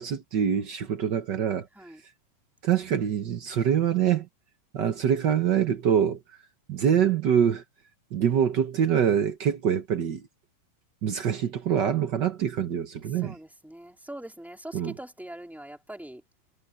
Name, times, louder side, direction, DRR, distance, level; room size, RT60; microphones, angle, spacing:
voice 1, 0.0-1.7 2.6-4.3 4.7-6.2 6.7-7.6 8.1-10.2 11.0-13.3 14.7-14.9, right 8 dB, 90° right, 0.9 m, -25 dB
voice 2, 0.6-1.1 1.7-2.0 5.6-5.8 13.1-16.2, right 1 dB, ahead, 3.0 m, -43 dB
omnidirectional pair, 3.7 m